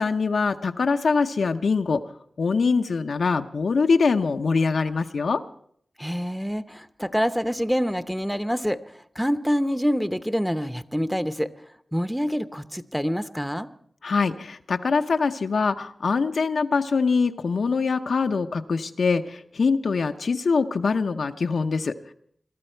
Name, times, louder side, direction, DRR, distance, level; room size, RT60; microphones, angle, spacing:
voice 1, 0.0-2.1 2.4-5.4 14.0-22.1, left 4 dB, 85° left, 7 dB, 0.7 m, -23 dB
voice 2, 6.0-8.8 9.2-11.5 11.9-13.7, equal, ahead, 11 dB, 0.8 m, -26 dB
22.0 x 12.5 x 4.5 m, 0.64 s
cardioid pair, 45°, 0 cm